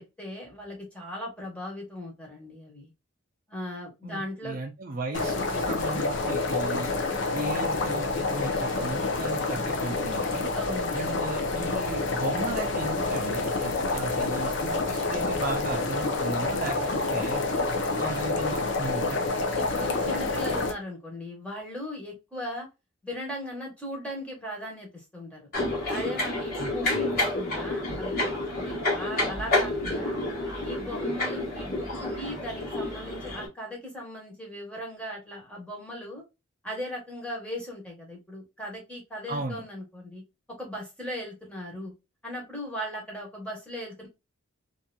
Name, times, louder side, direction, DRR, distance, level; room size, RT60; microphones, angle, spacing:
voice 1, 0.0-2.9 3.5-4.6 10.5-11.0 17.5-18.0 19.5-22.7 23.0-25.5 25.9-30.2 30.6-36.2 36.6-40.2 40.6-41.9 42.2-44.1, equal, 5° left, 1.2 m, -38 dB
voice 2, 4.0-6.9 7.3-10.5 10.9-17.4 18.0-19.4 26.6-27.2 39.3-39.6, right 2 dB, 45° right, 0.5 m, -35 dB
sound 1, 5.1-20.7, left 3 dB, 60° left, 0.6 m, -28 dB
sound 2, 25.5-33.5, left 2 dB, 45° left, 1.3 m, -29 dB
2.9 x 2.5 x 2.3 m
head